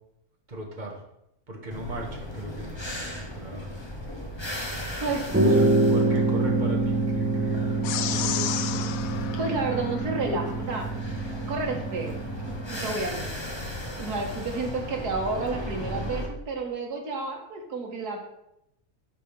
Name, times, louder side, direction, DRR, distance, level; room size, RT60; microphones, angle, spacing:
voice 1, 0.5-1.0 1.5-3.7 5.5-9.0, right 1 dB, 30° right, 1 dB, 1.7 m, -38 dB
sound 1, 1.7-16.3, left 1 dB, 20° left, 1.2 m, -36 dB
voice 2, 5.0-5.4 9.4-10.9 11.5-12.2 12.7-13.3 14.0-18.2, right 3 dB, 85° right, 1 dB, 2.1 m, -30 dB
sound 2, 5.3-13.0, right 2 dB, 15° right, 0.5 m, -26 dB
sound 3, 7.8-10.5, left 10 dB, 70° left, 1.0 m, -33 dB
12.0 x 4.1 x 5.2 m, 0.81 s
omnidirectional pair, 1.6 m